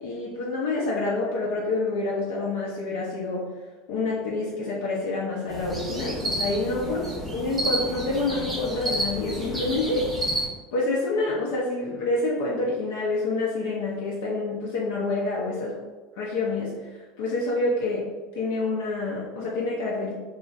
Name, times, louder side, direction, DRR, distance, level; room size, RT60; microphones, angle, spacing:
voice 1, 0.0-3.5 3.9-10.1 10.7-15.8 16.2-18.1 18.4-20.1, left 2 dB, 80° left, -4 dB, 0.5 m, -27 dB
sound 1, 5.5-10.5, right 1 dB, 10° right, 0.6 m, -30 dB
3.0 x 2.4 x 2.4 m, 1.2 s
supercardioid pair, 150°, 0 cm